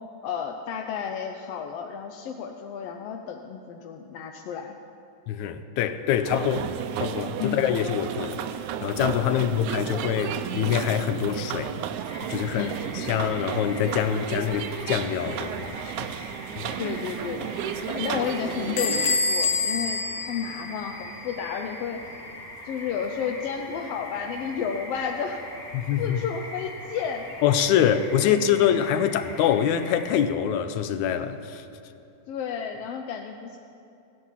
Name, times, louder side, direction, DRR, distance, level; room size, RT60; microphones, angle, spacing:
voice 1, 0.2-4.8 7.4-7.7 9.3-9.4 12.5-12.7 16.8-17.5 17.9-22.0 22.6-25.4 26.0-27.3 28.2-28.4 32.3-33.6, left 7 dB, 75° left, 1.5 m, -32 dB
voice 2, 5.3-6.7 7.0-8.4 8.8-11.8 12.3-12.7 13.0-16.1 16.6-16.7 25.7-26.2 27.4-31.6, left 9 dB, 90° left, 2.0 m, -25 dB
sound 1, 6.2-19.2, right 9 dB, 90° right, 2.0 m, -33 dB
sound 2, 12.1-30.2, left 1 dB, 25° left, 2.2 m, -42 dB
Bell / Door, 18.8-21.3, left 4 dB, 55° left, 1.6 m, -27 dB
15.5 x 9.9 x 7.3 m
omnidirectional pair, 3.3 m